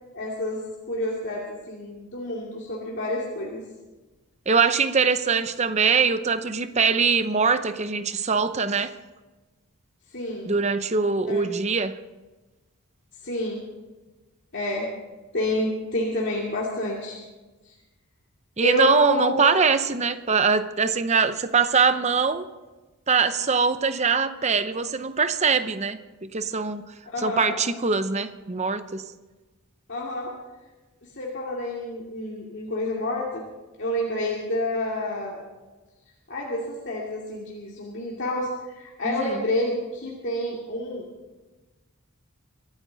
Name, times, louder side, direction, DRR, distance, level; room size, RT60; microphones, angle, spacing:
voice 1, 0.1-0.6 0.9-3.6 10.1-10.5 11.3-11.5 13.2-13.6 14.5-14.9 15.3-17.2 18.6-19.5 27.1-27.6 29.9-30.3 31.2-33.4 33.8-35.4 36.3-38.5 38.7-41.0, left 1 dB, 55° left, -3 dB, 2.4 m, -29 dB
voice 2, 4.5-8.9 10.5-11.9 18.6-22.5 23.1-26.0 26.3-26.8 27.2-29.0 39.0-39.4, right 5 dB, 30° right, 11 dB, 0.7 m, -22 dB
23.5 x 12.5 x 4.0 m, 1.2 s
head